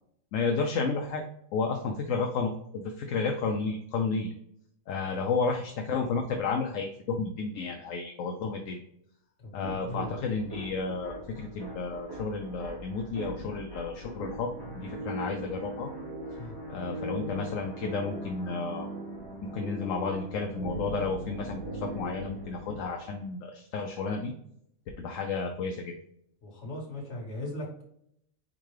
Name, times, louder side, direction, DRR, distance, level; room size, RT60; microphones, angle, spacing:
voice 1, 0.3-1.2 1.5-4.3 4.9-8.8 9.5-15.9 16.7-18.9 19.4-24.3 25.0-25.9, left 4 dB, 70° left, 3 dB, 0.9 m, -32 dB
voice 2, 9.4-10.4 16.4-16.5 26.4-27.8, left 1 dB, 50° left, -1 dB, 1.7 m, -39 dB
sound 1, 9.6-23.3, right 1 dB, 15° left, 1.4 m, -40 dB
4.5 x 3.8 x 3.2 m, 0.73 s
omnidirectional pair, 1.5 m